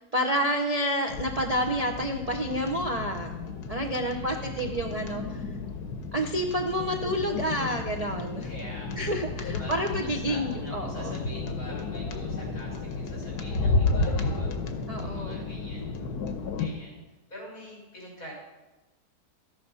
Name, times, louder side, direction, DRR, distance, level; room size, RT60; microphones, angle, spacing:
voice 1, 0.0-3.3 3.7-5.4 6.1-8.5 8.9-11.2 14.9-15.5, equal, 35° right, 1 dB, 0.7 m, -29 dB
sound 1, 1.1-16.7, left 3 dB, 80° left, 1.5 m, -32 dB
voice 2, 4.0-4.8 8.4-9.1 9.6-14.5 15.0-15.9 16.6-17.0 17.3-18.3, equal, 55° left, -3 dB, 5.5 m, -44 dB
13.5 x 8.3 x 5.7 m, 1.1 s
omnidirectional pair, 1.7 m